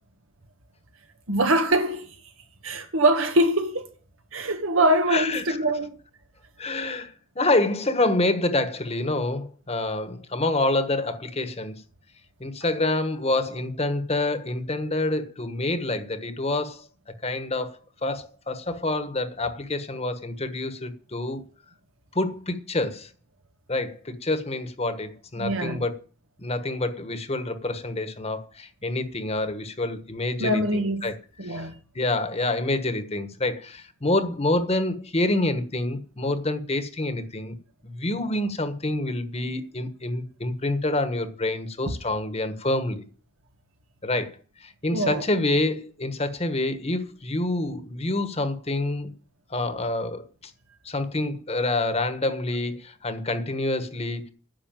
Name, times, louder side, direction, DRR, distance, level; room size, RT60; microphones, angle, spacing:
voice 1, 1.3-2.1 2.6-3.9 4.3-6.0 25.4-25.8 30.4-31.1 31.4-31.7 44.9-45.3, right 1 dB, 85° right, 1.9 m, -23 dB
voice 2, 5.1-5.6 6.6-11.7 12.4-16.9 17.2-21.4 22.1-23.1 23.7-25.9 26.4-31.2 31.4-31.7 31.9-37.5 37.8-43.0 44.0-49.1 49.5-50.5 50.8-54.3, left 2 dB, 30° left, 1.3 m, -27 dB
10.5 x 6.6 x 9.1 m
head